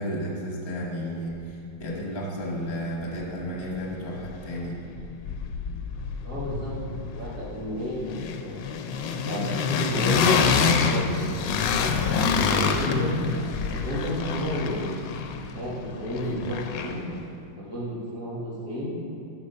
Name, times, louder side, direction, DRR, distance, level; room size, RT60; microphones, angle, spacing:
voice 1, 0.0-4.8, equal, 35° left, -2 dB, 1.5 m, -32 dB
sound 1, 3.2-3.3 3.6-4.7 5.0-17.2, left 6 dB, 80° left, 1.3 m, -27 dB
voice 2, 6.2-8.7 9.2-11.4 11.7-12.2 12.4-13.2 13.7-15.0 15.5-17.1 17.6-18.9, equal, 55° right, -7 dB, 2.9 m, -31 dB
8.2 x 5.7 x 6.7 m, 2.7 s
omnidirectional pair, 2.0 m